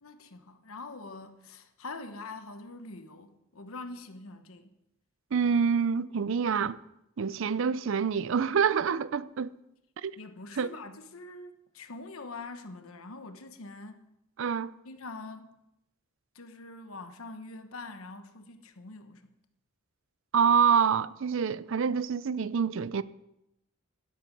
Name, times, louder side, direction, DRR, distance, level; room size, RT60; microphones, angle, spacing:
voice 1, 0.0-4.7 10.2-14.1 14.8-15.6 16.3-19.3, left 3 dB, 85° left, 1.1 m, -44 dB
voice 2, 5.3-6.8 7.2-9.5 10.0-10.2 10.6-10.7 14.4-14.7 20.3-23.0, right 6 dB, 65° right, 0.5 m, -26 dB
12.0 x 11.0 x 5.3 m
head